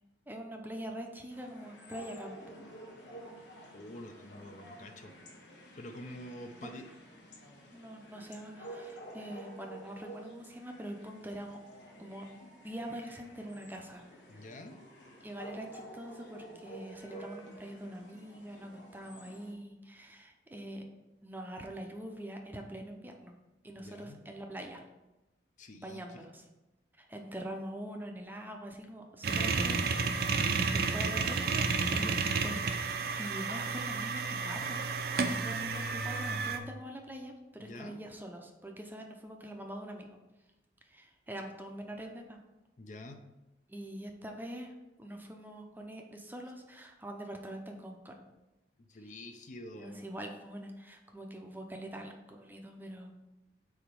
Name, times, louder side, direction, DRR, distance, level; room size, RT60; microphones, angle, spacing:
voice 1, 0.3-2.6 6.6-6.7 7.3-7.4 7.7-11.6 12.0-12.3 12.6-14.5 15.2-20.8 21.2-23.3 23.6-24.8 25.7-26.5 27.0-30.0 30.4-32.6 33.2-40.2 40.8-42.4 43.7-48.2 49.8-53.1, right 1 dB, 10° right, 3 dB, 0.6 m, -44 dB
sound 1, 1.3-19.5, right 1 dB, 85° left, 1.2 m, -51 dB
voice 2, 3.7-5.1 5.8-6.9 14.3-14.8 23.8-24.2 25.6-26.2 37.6-38.0 42.8-43.2 48.9-50.0, left 1 dB, 45° left, 6 dB, 0.5 m, -47 dB
sound 2, 29.2-36.6, right 4 dB, 55° right, 0.5 m, -31 dB
4.8 x 4.2 x 5.2 m, 1.0 s
head